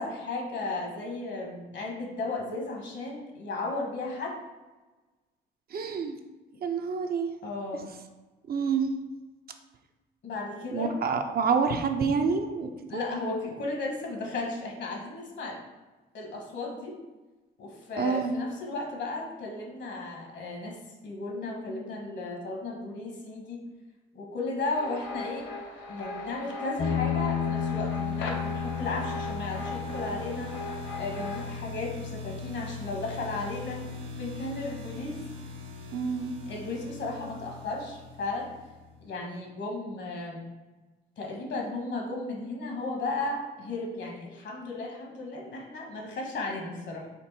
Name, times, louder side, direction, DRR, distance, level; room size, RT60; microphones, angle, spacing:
voice 1, 0.0-4.4 7.4-7.9 10.2-10.9 12.9-15.6 16.1-16.9 17.6-20.8 21.0-23.6 24.1-25.5 25.9-30.5 31.0-33.8 34.1-35.2 36.5-38.5 39.0-40.4 41.2-47.0, left 2 dB, 65° left, 0 dB, 1.2 m, -35 dB
voice 2, 5.7-6.2 6.6-7.3 8.5-8.9 10.7-13.0 18.0-18.3 35.9-36.3, right 5 dB, 50° right, 6 dB, 0.5 m, -27 dB
sound 1, 24.7-31.5, left 2 dB, 85° left, 0.7 m, -38 dB
sound 2, 26.8-35.8, left 7 dB, 45° left, 0.6 m, -35 dB
sound 3, 27.2-38.9, left 3 dB, 85° right, 0.8 m, -43 dB
4.4 x 2.5 x 4.1 m, 1.2 s
cardioid pair, 90°, 20 cm